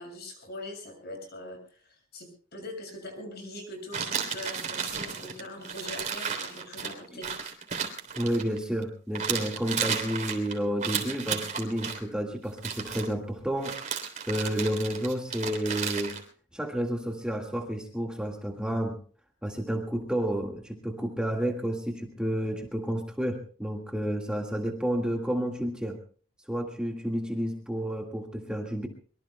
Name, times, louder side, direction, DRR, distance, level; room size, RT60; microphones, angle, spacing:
voice 1, 0.0-7.3, left 1 dB, 50° left, 4 dB, 6.8 m, -42 dB
sound 1, 3.9-8.8 9.1-12.0 12.5-13.1 13.6-16.2, right 6 dB, 35° right, 3.4 m, -33 dB
voice 2, 8.2-13.8 14.3-16.2 16.5-19.0 19.4-26.0 26.5-28.9, equal, 5° right, 2 dB, 1.7 m, -30 dB
24.5 x 23.0 x 2.2 m, 0.41 s
head